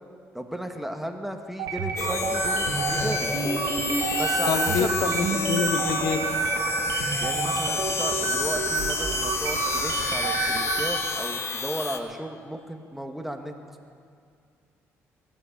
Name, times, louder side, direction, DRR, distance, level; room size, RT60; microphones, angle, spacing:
voice 1, 0.3-3.4 4.2-5.4 7.2-13.5, right 1 dB, 5° right, 4 dB, 1.6 m, -34 dB
sound 1, 1.6-11.1, right 4 dB, 80° right, 1.6 m, -28 dB
sound 2, 2.0-12.0, left 5 dB, 50° left, 1.4 m, -30 dB
voice 2, 4.5-6.3, left 6 dB, 80° left, 9 dB, 1.0 m, -27 dB
19.5 x 7.9 x 8.6 m, 2.3 s
supercardioid pair, 70°, 6 cm